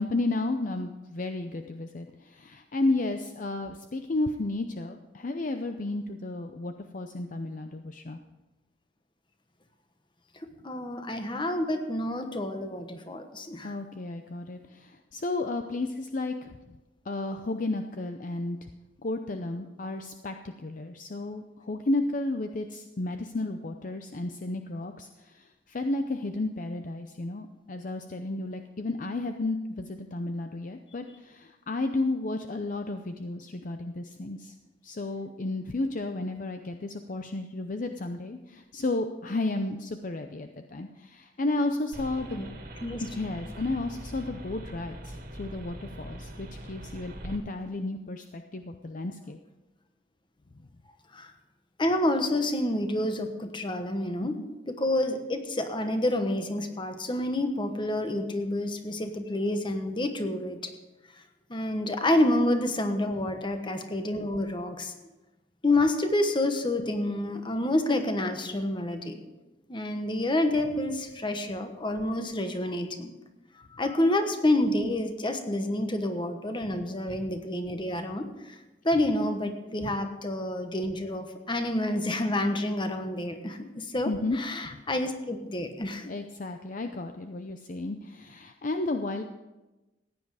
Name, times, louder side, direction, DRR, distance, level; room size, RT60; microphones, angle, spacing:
voice 1, 0.0-8.2 13.6-16.8 17.1-18.7 19.0-34.6 34.8-42.5 43.0-49.4 54.2-54.4 76.7-77.3 79.8-79.9 84.1-84.4 84.6-84.8 86.0-89.2, left 2 dB, 45° left, 6 dB, 0.6 m, -33 dB
voice 2, 10.6-13.7 42.4-42.5 42.8-43.0 51.1-51.3 51.8-54.4 54.7-60.7 61.5-64.9 65.6-69.2 69.7-73.1 73.7-78.6 78.8-86.0, left 1 dB, 25° left, 7 dB, 1.2 m, -28 dB
sound 1, 41.9-47.4, right 1 dB, 55° right, 2.0 m, -42 dB
15.5 x 9.7 x 4.9 m, 1.1 s
head